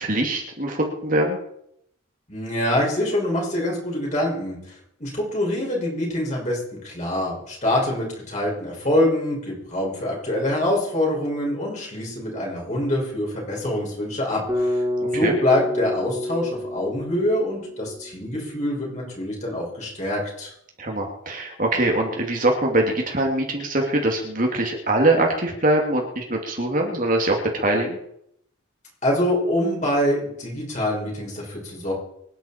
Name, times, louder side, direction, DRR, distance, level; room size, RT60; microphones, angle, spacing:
voice 1, 0.0-1.4 15.1-15.3 20.8-28.0, right 1 dB, 40° right, 1 dB, 2.4 m, -23 dB
voice 2, 2.3-4.7 5.0-20.5 29.0-31.9, left 1 dB, 35° left, -2 dB, 5.9 m, -25 dB
Bass guitar, 14.5-18.6, left 1 dB, 15° right, 3.4 m, -28 dB
24.5 x 10.5 x 4.5 m, 0.74 s
head